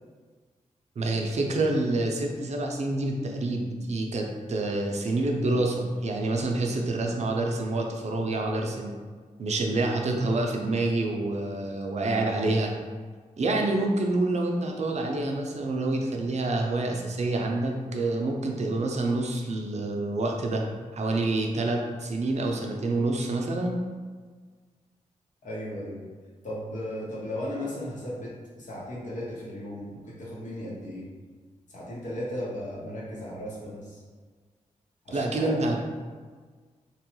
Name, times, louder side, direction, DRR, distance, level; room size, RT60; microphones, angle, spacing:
voice 1, 1.0-8.9 9.4-12.7 13.4-20.6 20.9-23.8 35.1-35.8, right 2 dB, 55° right, 1 dB, 0.4 m, -27 dB
voice 2, 25.4-26.0 26.4-31.1 31.7-34.0 35.0-35.5, left 1 dB, 65° left, -5 dB, 1.0 m, -36 dB
2.9 x 2.3 x 3.0 m, 1.5 s
cardioid pair, 60°, 13 cm